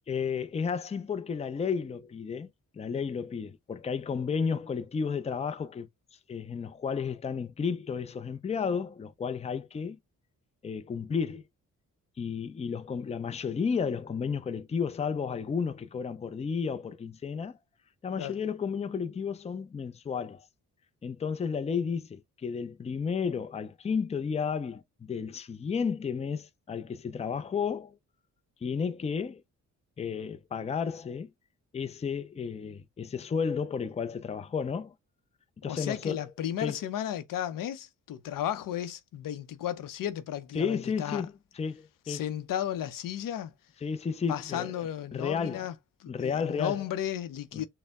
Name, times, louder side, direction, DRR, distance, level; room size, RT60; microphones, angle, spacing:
voice 1, 0.1-5.9 6.3-10.0 10.6-11.4 12.2-17.6 18.0-20.4 21.0-28.0 28.6-29.4 30.0-31.3 31.7-34.9 35.6-36.2 36.6-36.8 40.5-42.2 43.8-44.8 45.1-45.7 46.1-46.9 47.5-47.7, left 6 dB, 20° left, 0.4 m, -32 dB
voice 2, 35.6-41.2 42.1-43.5 44.3-45.7 46.0-47.7, left 10 dB, 85° left, 0.6 m, -34 dB
4.3 x 2.1 x 3.5 m
cardioid pair, 115°, 32 cm